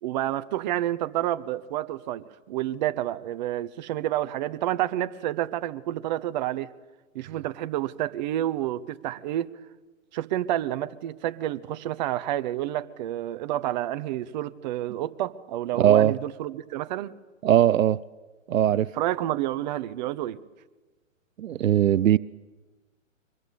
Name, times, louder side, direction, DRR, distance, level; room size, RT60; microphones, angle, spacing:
voice 1, 0.0-6.7 7.1-9.5 10.1-17.1 18.9-20.4, right 13 dB, 35° right, 0.9 m, -29 dB
voice 2, 15.8-16.1 17.4-18.0 18.5-18.9 21.4-22.2, right 11 dB, 80° right, 0.7 m, -20 dB
24.0 x 21.0 x 8.6 m
hypercardioid pair, 145°, 39 cm